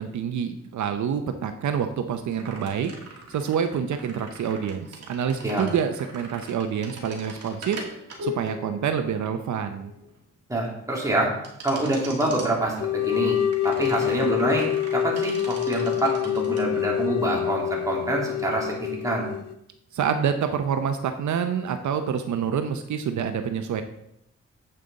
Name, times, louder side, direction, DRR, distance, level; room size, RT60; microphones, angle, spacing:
voice 1, 0.0-2.9 3.3-7.8 8.2-9.9 19.9-23.8, right 7 dB, 80° right, 7 dB, 0.7 m, -27 dB
sound 1, 2.4-10.2 11.4-12.5 13.5-16.6, equal, 60° right, 2.3 m, -41 dB
voice 2, 10.5-11.3 11.6-13.4 13.6-14.7 14.9-19.3, right 1 dB, 10° right, -3 dB, 2.5 m, -26 dB
sound 2, 12.8-19.5, left 11 dB, 60° left, 0.8 m, -26 dB
9.0 x 7.7 x 4.0 m, 0.77 s
wide cardioid pair, 130°, 29 cm